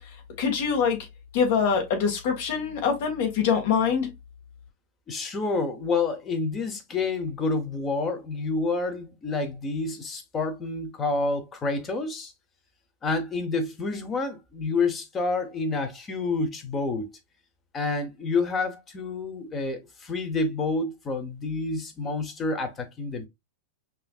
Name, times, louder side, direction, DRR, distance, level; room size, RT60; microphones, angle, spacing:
voice 1, 0.4-1.0 1.3-4.1, left 6 dB, 55° left, 1.6 m, -24 dB
voice 2, 5.1-12.3 13.0-17.1 17.7-23.3, left 3 dB, 15° left, 0.6 m, -28 dB
5.4 x 2.6 x 2.3 m
supercardioid pair, 160°, 0 cm